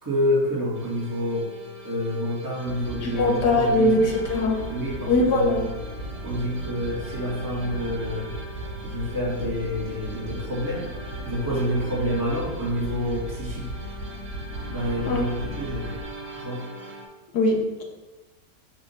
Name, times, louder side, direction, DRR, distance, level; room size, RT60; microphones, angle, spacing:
voice 1, 0.0-1.5 1.8-3.9 4.7-5.7 6.2-8.3 8.8-10.9 11.2-13.7 14.7-15.3 15.6-15.9 16.3-16.6, equal, 10° right, -5 dB, 1.5 m, -28 dB
sound 1, 0.7-17.1, right 2 dB, 55° right, 1.1 m, -42 dB
sound 2, 2.6-16.0, right 1 dB, 75° right, 3.0 m, -36 dB
voice 2, 3.0-4.6 5.1-5.7 15.1-15.2 17.3-17.6, left 2 dB, 70° left, 1 dB, 1.5 m, -21 dB
6.7 x 2.9 x 5.6 m, 1.1 s
omnidirectional pair, 1.8 m